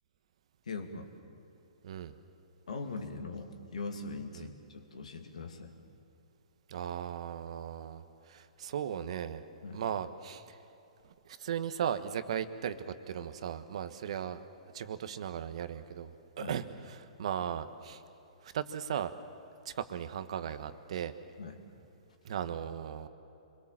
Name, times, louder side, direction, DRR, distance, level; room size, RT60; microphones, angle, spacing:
voice 1, 0.7-1.1 2.7-5.7 9.6-9.8 16.4-16.6 21.4-21.6, left 3 dB, 80° left, 5 dB, 2.7 m, -41 dB
voice 2, 1.8-2.1 4.3-4.5 6.7-9.4 9.7-10.6 11.2-14.4 14.7-18.0 18.4-19.1 19.6-21.1 22.2-23.1, right 9 dB, 60° right, 11 dB, 1.3 m, -37 dB
26.0 x 21.5 x 7.5 m, 2.8 s
hypercardioid pair, 130°, 4 cm